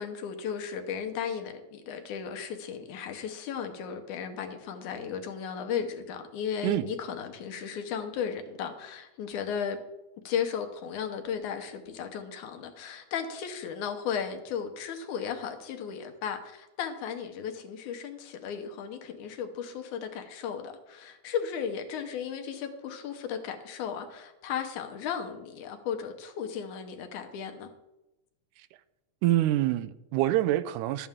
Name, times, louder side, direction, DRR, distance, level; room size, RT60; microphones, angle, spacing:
voice 1, 0.0-9.8 10.3-27.7, left 7 dB, 80° left, 2.4 m, -35 dB
voice 2, 29.2-31.1, right 14 dB, 85° right, 2.1 m, -26 dB
12.5 x 8.5 x 3.6 m
omnidirectional pair, 3.5 m